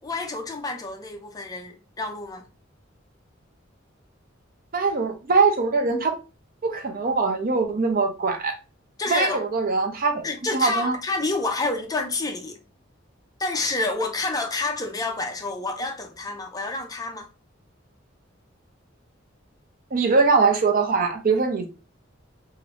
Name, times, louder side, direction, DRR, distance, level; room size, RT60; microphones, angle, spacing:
voice 1, 0.0-2.4 9.0-9.4 10.2-12.6 13.4-17.3, left 3 dB, 20° left, 0.4 m, -28 dB
voice 2, 4.7-6.2 6.6-8.5 9.1-10.2 10.5-11.0 19.9-21.7, right 4 dB, 45° right, 0.6 m, -22 dB
3.0 x 2.5 x 3.0 m
head